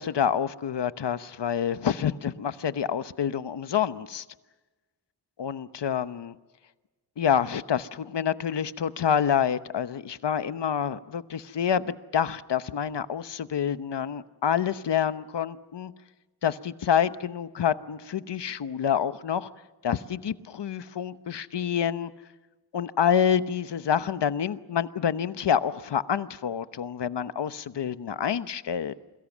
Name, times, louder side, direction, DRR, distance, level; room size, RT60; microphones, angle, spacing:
voice 1, 0.0-4.2 5.4-6.3 7.2-15.9 16.4-19.5 19.8-22.1 22.7-28.9, left 8 dB, 85° left, 1.0 m, -27 dB
28.5 x 22.5 x 7.3 m
wide cardioid pair, 115°, 41 cm